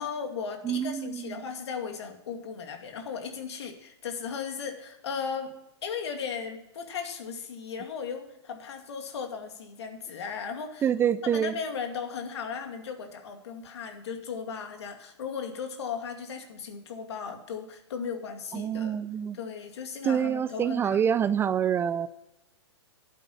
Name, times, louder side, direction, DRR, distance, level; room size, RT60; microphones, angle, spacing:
voice 1, 0.0-5.5 5.8-10.9 11.3-19.0 19.3-21.0, left 6 dB, 70° left, 5 dB, 2.3 m, -36 dB
voice 2, 0.6-1.4 10.8-11.5 18.5-19.4 20.0-22.1, right 8 dB, 15° right, 16 dB, 0.3 m, -26 dB
11.0 x 9.1 x 5.7 m, 0.90 s
hypercardioid pair, 120°, 15 cm